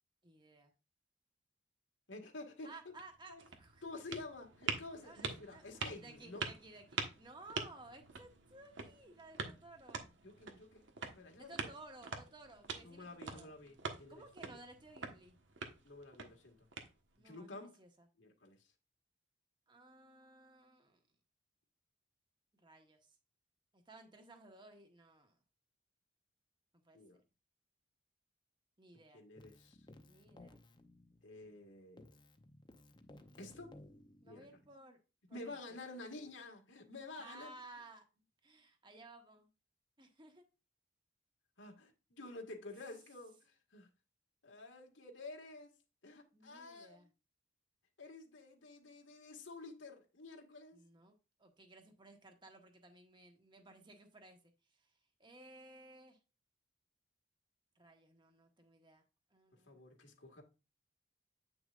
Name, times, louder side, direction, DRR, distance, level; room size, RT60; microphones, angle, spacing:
voice 1, 0.2-0.7 2.6-3.8 5.0-5.6 6.0-10.1 11.4-13.5 14.1-15.4 17.2-18.1 19.7-21.0 22.6-23.2 23.7-25.4 26.8-27.0 28.8-29.2 30.1-30.6 33.1-33.4 34.2-35.0 35.3-35.8 37.2-38.0 38.4-39.5 40.0-40.4 46.3-47.1 50.7-54.5 54.8-54.9 55.2-56.2 57.7-59.0 59.3-59.8, right 2 dB, 25° right, 1.4 m, -57 dB
voice 2, 2.1-2.9 3.3-3.4 3.8-6.4 10.2-11.7 12.8-14.6 15.8-16.5 17.2-17.8 18.2-18.6 26.9-27.2 29.1-29.8 31.2-32.1 33.4-33.8 34.3-34.5 35.3-37.5 41.6-43.9 44.4-45.7 46.0-47.0 48.0-50.8 59.7-60.4, left 2 dB, 90° left, 1.9 m, -50 dB
sound 1, 2.8-17.4, right 4 dB, 75° right, 1.4 m, -46 dB
Keyboard (musical), 29.4-31.6 32.0-34.7, left 1 dB, 25° left, 0.7 m, -59 dB
8.9 x 6.0 x 2.5 m
head